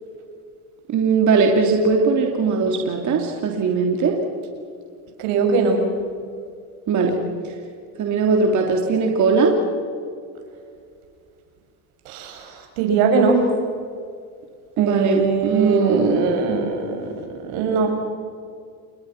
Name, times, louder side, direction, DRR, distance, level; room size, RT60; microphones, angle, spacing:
voice 1, 0.9-4.2 6.9-7.2 7.4-7.5 8.0-9.5 14.8-16.8, right 4 dB, 40° right, 1 dB, 3.2 m, -20 dB
voice 2, 5.2-5.8 12.1-13.5 14.8-17.1 17.4-17.9, right 4 dB, 75° right, 3 dB, 6.8 m, -21 dB
29.5 x 21.5 x 6.1 m, 2.2 s
supercardioid pair, 125°, 44 cm